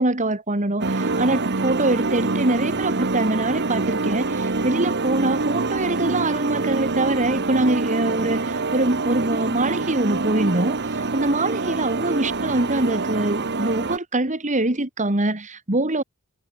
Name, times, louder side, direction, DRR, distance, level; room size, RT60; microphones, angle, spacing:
voice 1, 0.0-16.0, right 2 dB, 35° right, 2.4 m, -24 dB
sound 1, 0.8-14.0, right 3 dB, 50° right, 1.4 m, -25 dB
head